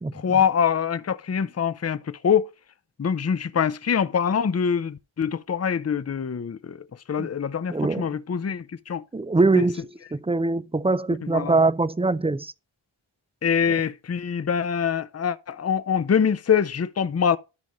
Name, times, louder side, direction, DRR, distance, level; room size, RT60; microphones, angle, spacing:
voice 1, 0.1-2.5 3.0-9.0 9.5-9.6 11.2-11.6 13.4-17.4, left 7 dB, 30° left, 0.6 m, -24 dB
voice 2, 7.7-8.1 9.1-9.8 10.1-12.5, right 3 dB, 15° right, 0.4 m, -22 dB
13.0 x 5.1 x 3.1 m
cardioid pair, 45°, 48 cm